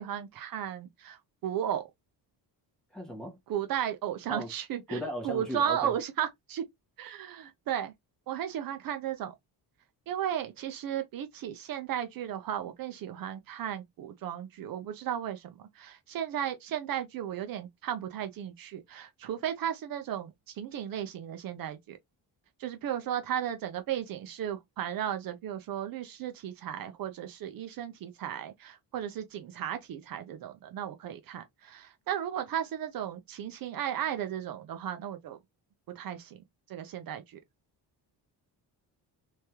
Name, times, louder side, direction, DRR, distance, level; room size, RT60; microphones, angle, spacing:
voice 1, 0.0-1.8 3.5-6.6 7.0-7.9 8.3-9.3 10.1-22.0 22.6-35.4 36.0-36.4 36.7-37.4, right 10 dB, 60° right, 0.6 m, -35 dB
voice 2, 2.9-3.4 4.3-4.5 4.9-5.9, equal, ahead, 1.6 m, -36 dB
3.4 x 3.2 x 2.9 m
cardioid pair, 175°, 40 cm